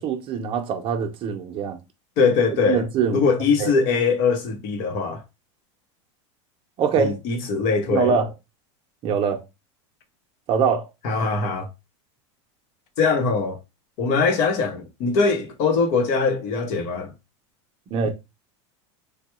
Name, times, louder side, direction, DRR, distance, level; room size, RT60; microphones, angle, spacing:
voice 1, 0.0-1.8 2.7-3.3 3.6-3.7 6.8-7.2 7.9-8.3 9.0-9.4 10.5-10.9 17.9-18.1, right 6 dB, 35° right, 0.7 m, -23 dB
voice 2, 2.2-2.8 3.1-5.2 7.0-8.1 11.0-11.7 13.0-13.6 14.0-17.1 18.0-18.1, left 4 dB, 50° left, 0.9 m, -22 dB
3.3 x 2.2 x 3.0 m
supercardioid pair, 135°, 15 cm